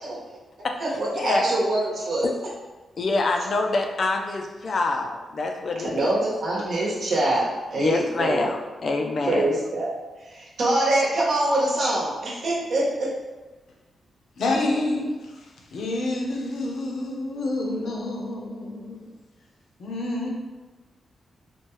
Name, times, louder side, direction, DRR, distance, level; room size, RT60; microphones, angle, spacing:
voice 1, 0.8-2.3 5.8-8.5 9.2-9.9 10.3-13.1, right 1 dB, 60° right, -5 dB, 1.0 m, -24 dB
voice 2, 3.0-6.1 7.8-9.5, left 3 dB, 45° left, 3 dB, 0.4 m, -26 dB
voice 3, 14.4-15.3 15.7-19.0 19.8-20.3, left 2 dB, 70° left, -1 dB, 0.8 m, -28 dB
4.4 x 2.2 x 3.1 m, 1.2 s
wide cardioid pair, 145°, 0 cm